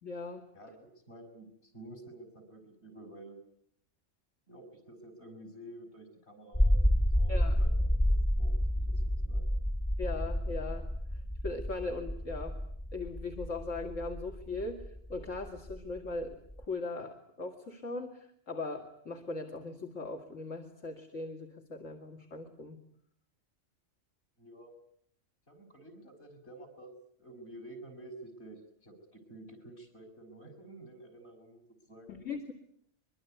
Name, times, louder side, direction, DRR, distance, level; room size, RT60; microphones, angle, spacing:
voice 1, 0.0-0.4 7.3-7.6 10.0-12.6 12.9-22.8 32.1-32.5, left 3 dB, 70° left, 3 dB, 2.8 m, -39 dB
voice 2, 0.5-3.4 4.5-7.7 8.0-8.5 8.8-8.9 9.2-9.5 24.4-24.8 25.5-26.9 27.2-32.2, right 1 dB, 55° left, 7 dB, 6.7 m, -50 dB
sound 1, 6.5-16.6, equal, 15° left, 1.3 m, -30 dB
24.0 x 23.5 x 9.4 m, 0.66 s
omnidirectional pair, 1.3 m